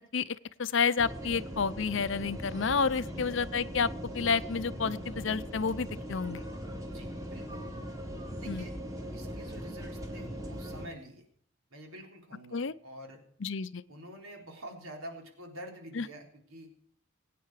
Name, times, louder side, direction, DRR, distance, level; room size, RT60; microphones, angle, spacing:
voice 1, 0.1-3.9 4.1-6.4 8.5-8.7 12.5-12.7 13.4-13.8 16.0-16.1, left 5 dB, 60° left, 15 dB, 0.6 m, -30 dB
sound 1, 1.0-10.9, equal, 15° right, 2.0 m, -40 dB
voice 2, 3.0-3.3 6.9-7.7 8.4-8.7 9.1-11.2 11.7-13.2 13.9-16.7, right 1 dB, 80° right, 1 dB, 3.8 m, -47 dB
22.0 x 9.3 x 4.8 m, 0.62 s
head